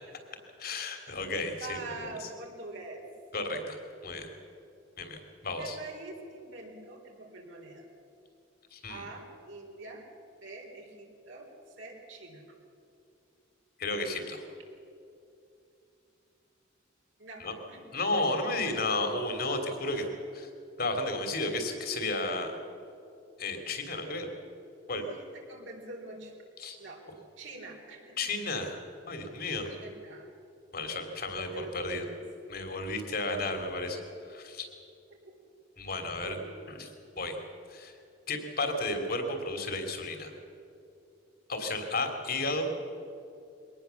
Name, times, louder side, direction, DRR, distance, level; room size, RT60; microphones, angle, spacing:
voice 1, 0.6-1.8 3.3-3.8 4.0-4.3 5.0-5.2 5.4-5.8 8.7-9.0 13.8-14.4 17.4-17.5 17.9-20.0 20.3-20.5 20.8-22.5 23.4-24.3 24.9-25.0 26.6-26.8 28.2-28.8 29.1-29.7 30.7-32.0 32.5-34.0 34.3-34.7 35.8-36.4 36.7-36.9 37.2-37.4 37.7-37.9 38.3-40.3 41.5-42.8, left 2 dB, 50° left, 5 dB, 3.0 m, -32 dB
voice 2, 1.6-3.1 3.5-3.6 5.6-7.9 8.9-10.0 10.4-11.5 11.8-12.4 17.2-17.8 18.1-18.8 19.9-20.1 23.9-24.3 25.0-26.3 26.8-27.0 27.4-28.2 29.8-30.3 31.5-32.2 35.2-35.4 36.2-36.5, right 2 dB, 75° right, 0 dB, 3.9 m, -45 dB
23.0 x 18.5 x 7.1 m, 2.7 s
head